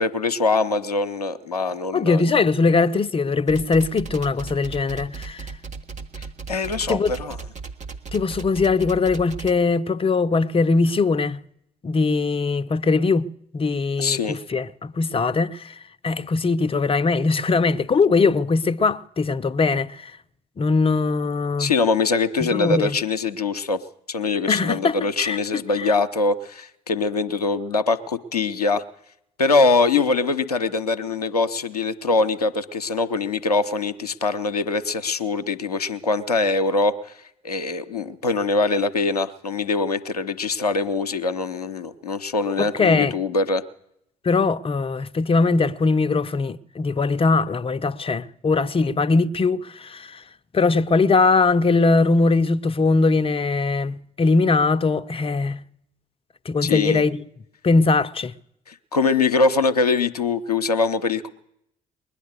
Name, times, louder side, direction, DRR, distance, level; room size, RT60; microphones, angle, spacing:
voice 1, 0.0-2.3 6.2-7.4 14.0-14.4 21.6-23.8 24.1-28.8 29.4-37.0 37.4-43.6 56.6-57.0 58.7-61.3, left 3 dB, 90° left, 0.6 m, -23 dB
voice 2, 1.9-5.5 6.9-7.1 8.1-11.4 11.8-13.3 13.5-20.2 20.6-21.7 22.4-23.0 24.5-25.4 25.8-25.9 42.6-43.1 44.2-50.2 50.5-55.6 56.4-57.2 57.6-58.3, left 4 dB, 30° left, 0.7 m, -21 dB
sound 1, 3.5-9.5, right 5 dB, 40° right, 1.5 m, -36 dB
20.5 x 9.9 x 6.8 m
figure-of-eight pair, 45°, 19 cm